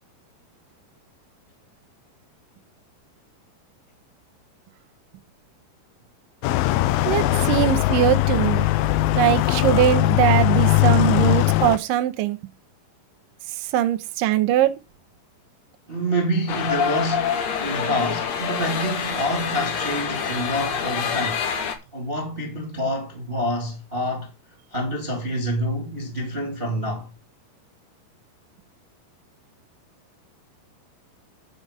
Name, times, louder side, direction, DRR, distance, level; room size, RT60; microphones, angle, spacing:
sound 1, 6.4-11.8, left 16 dB, 80° left, 2.2 m, -20 dB
voice 1, 7.1-8.7 9.2-12.4 13.7-14.7, right 13 dB, 70° right, 2.2 m, -21 dB
voice 2, 15.9-21.5 21.9-24.3 24.7-27.1, equal, 15° right, 2.1 m, -27 dB
sound 2, 16.5-21.8, left 7 dB, 60° left, 1.9 m, -26 dB
9.8 x 5.8 x 5.1 m
omnidirectional pair, 4.7 m